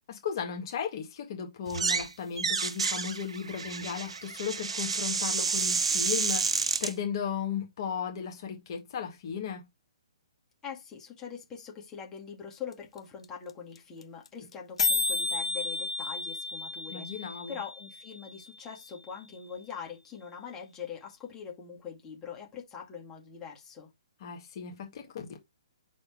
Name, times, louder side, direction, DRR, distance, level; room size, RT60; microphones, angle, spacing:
voice 1, 0.1-9.7 16.9-17.6 24.2-25.4, left 7 dB, 45° left, 1.9 m, -36 dB
sound 1, 1.7-2.1 2.4-6.9, right 5 dB, 70° right, 0.8 m, -30 dB
voice 2, 10.6-23.9, left 7 dB, 15° left, 2.0 m, -43 dB
sound 2, 12.7-12.8 13.0-13.1 13.2-13.5 13.8-13.9 14.0-14.3 14.5-14.6 14.8-18.8, left 3 dB, 70° left, 1.0 m, -32 dB
5.1 x 4.3 x 4.5 m
figure-of-eight pair, 130°, 3 cm